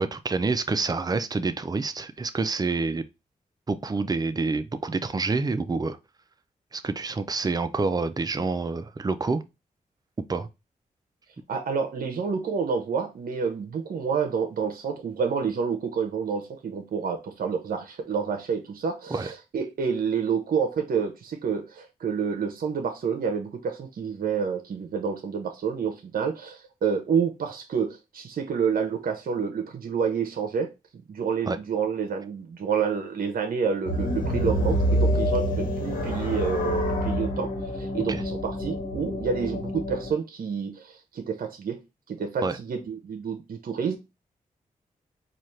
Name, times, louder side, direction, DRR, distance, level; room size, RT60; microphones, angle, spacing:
voice 1, 0.0-3.0 3.7-6.0 6.7-9.4 10.3-10.5 19.1-19.3 31.5-31.6 38.1-38.2 42.4-42.6, right 3 dB, 25° right, 0.5 m, -27 dB
voice 2, 11.5-30.7 31.1-41.8 42.1-44.0, right 6 dB, 70° right, 0.7 m, -29 dB
sound 1, 33.9-40.1, equal, 70° left, 1.3 m, -27 dB
4.2 x 2.4 x 3.1 m
cardioid pair, 50°, 15 cm